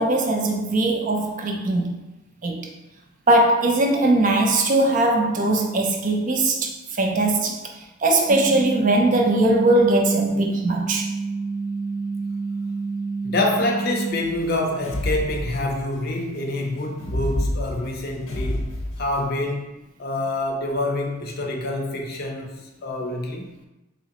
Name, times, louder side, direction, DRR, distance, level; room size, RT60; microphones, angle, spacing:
voice 1, 0.0-2.0 2.4-2.7 3.3-7.6 8.0-11.1, right 2 dB, 40° right, 2 dB, 0.4 m, -20 dB
sound 1, 8.3-14.1, right 4 dB, 10° left, 0.7 m, -28 dB
voice 2, 13.2-23.5, left 2 dB, 50° left, 2 dB, 0.5 m, -27 dB
sound 2, 14.2-16.0 16.9-19.2, left 1 dB, 85° left, 0.7 m, -28 dB
3.7 x 3.0 x 2.9 m, 1.0 s
head